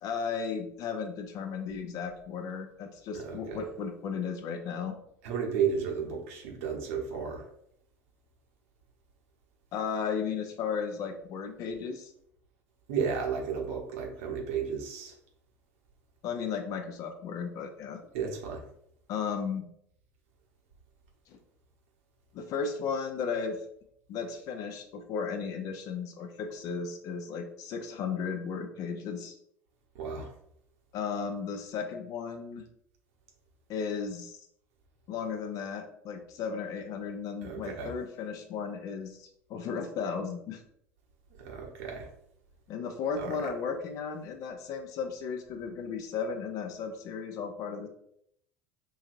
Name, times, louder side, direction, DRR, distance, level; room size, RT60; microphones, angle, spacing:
voice 1, 0.0-5.0 9.7-12.1 16.2-18.0 19.1-19.7 21.3-21.4 22.3-23.6 24.1-29.4 30.9-32.6 33.7-34.4 35.1-40.6 42.7-47.9, left 6 dB, 45° left, 5 dB, 0.6 m, -35 dB
voice 2, 3.1-3.6 5.2-7.4 12.9-15.1 18.1-18.6 29.9-30.3 37.4-37.9 41.4-42.1 43.2-43.3, right 6 dB, 60° right, 0 dB, 0.9 m, -33 dB
4.8 x 2.7 x 2.5 m, 0.72 s
figure-of-eight pair, 70°, 8 cm